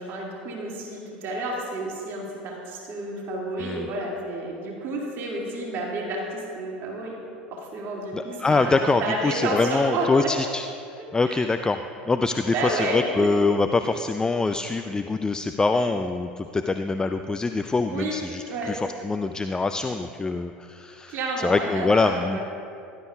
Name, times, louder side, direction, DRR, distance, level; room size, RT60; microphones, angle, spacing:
voice 1, 0.0-7.2 7.5-10.3 11.3-11.4 12.5-13.3 17.9-18.8 21.1-22.4, right 2 dB, 45° right, -3 dB, 2.3 m, -30 dB
voice 2, 8.1-10.7 10.9-11.8 12.1-22.4, left 3 dB, 15° left, 8 dB, 0.4 m, -24 dB
17.5 x 11.5 x 2.4 m, 2.5 s
figure-of-eight pair, 75°, 5 cm